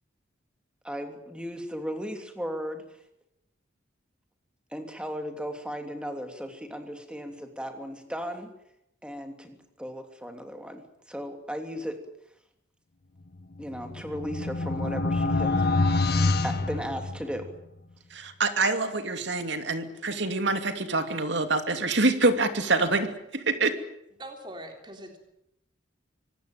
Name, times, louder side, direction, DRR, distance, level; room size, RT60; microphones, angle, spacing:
voice 1, 0.8-2.8 4.7-8.5 9.0-12.0 13.6-15.7 16.4-17.5, equal, 5° right, 5 dB, 3.0 m, -36 dB
sound 1, 13.6-17.6, left 3 dB, 50° left, 1.7 m, -26 dB
voice 2, 18.1-23.8, right 3 dB, 60° right, 8 dB, 2.7 m, -26 dB
voice 3, 24.2-25.2, right 1 dB, 25° right, 3 dB, 3.6 m, -42 dB
25.0 x 19.0 x 9.1 m, 0.81 s
head